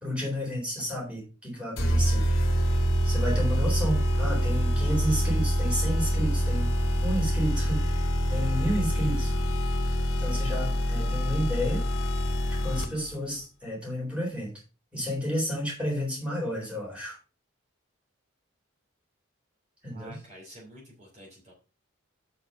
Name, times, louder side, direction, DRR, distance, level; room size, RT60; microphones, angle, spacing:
voice 1, 0.0-2.2 3.0-6.7 7.0-9.3 10.2-11.8 12.5-14.5 14.9-17.2 19.8-20.2, equal, 5° right, -3 dB, 3.8 m, -31 dB
sound 1, 1.8-13.1, equal, 80° left, 1.6 m, -26 dB
voice 2, 19.9-21.5, right 1 dB, 35° right, -4 dB, 3.0 m, -49 dB
6.9 x 5.9 x 5.3 m, 0.33 s
head